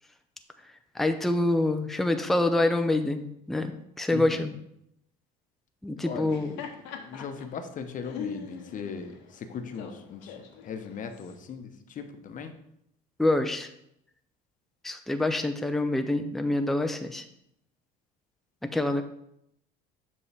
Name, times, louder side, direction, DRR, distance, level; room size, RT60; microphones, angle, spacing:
voice 1, 0.9-4.5 5.8-6.6 13.2-13.7 14.8-17.2 18.6-19.0, left 2 dB, ahead, 7 dB, 0.5 m, -26 dB
voice 2, 4.1-4.5 6.0-12.6, left 6 dB, 45° left, 8 dB, 0.9 m, -39 dB
Laughter, 6.2-11.4, left 6 dB, 80° left, 1.0 m, -43 dB
7.1 x 5.4 x 3.4 m, 0.77 s
supercardioid pair, 90°, 19 cm